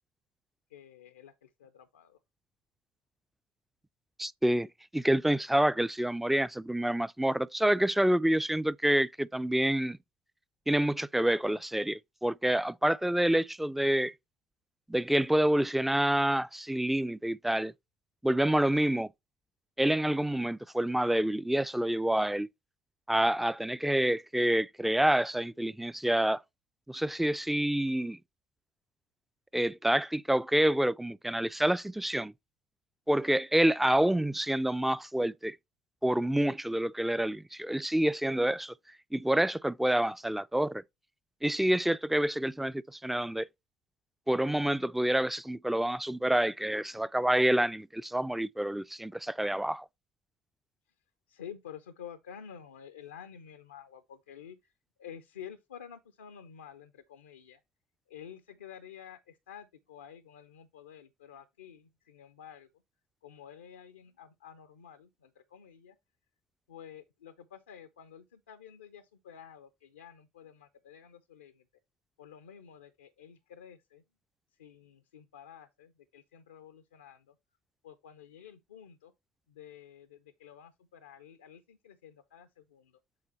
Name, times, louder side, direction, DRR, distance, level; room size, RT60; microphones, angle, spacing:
voice 1, 0.7-2.2 51.3-54.7 55.0-57.6 58.1-62.8 63.2-66.0 66.7-71.7 72.2-74.0 74.5-77.4 77.8-79.1 79.5-83.0, left 8 dB, 85° left, 0.5 m, -50 dB
voice 2, 4.2-10.0 10.7-14.1 14.9-17.7 18.2-19.1 19.8-22.5 23.1-26.4 26.9-28.2 29.5-32.3 33.1-35.6 36.0-38.7 39.1-40.8 41.4-43.5 44.3-49.9, right 1 dB, 5° right, 0.3 m, -27 dB
7.7 x 3.8 x 4.1 m
hypercardioid pair, 60°, 5 cm